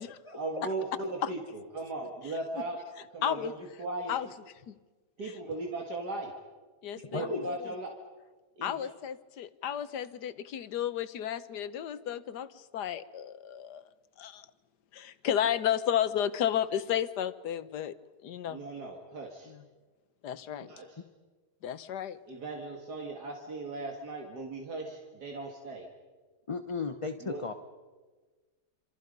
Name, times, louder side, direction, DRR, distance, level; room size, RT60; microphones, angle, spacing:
voice 1, 0.3-2.8 3.1-4.3 5.2-6.3 6.9-7.9 8.6-8.9 18.5-19.5 20.7-21.0 22.3-25.9 27.2-27.4, right 2 dB, 75° right, 1 dB, 2.7 m, -38 dB
voice 2, 3.2-3.5 4.1-4.3 4.7-4.8 6.8-7.7 8.6-13.9 14.2-14.5 14.9-18.0 18.2-18.6 20.2-20.7 21.6-22.2, left 10 dB, 85° left, 13 dB, 1.5 m, -32 dB
voice 3, 7.0-7.5 20.6-20.7 26.5-27.5, left 4 dB, 25° left, 7 dB, 0.8 m, -35 dB
27.0 x 27.0 x 5.4 m, 1.3 s
omnidirectional pair, 1.7 m